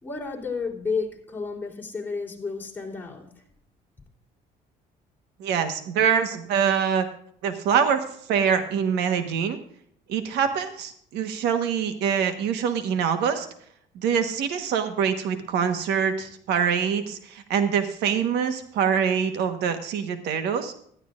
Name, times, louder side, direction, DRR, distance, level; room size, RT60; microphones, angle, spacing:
voice 1, 0.0-3.4, left 4 dB, 10° left, 3.5 m, -32 dB
voice 2, 5.4-7.0 7.4-8.0 8.3-9.6 10.1-13.5 13.9-20.7, right 7 dB, 85° right, 1.3 m, -24 dB
15.0 x 12.5 x 2.5 m
cardioid pair, 110°, 17 cm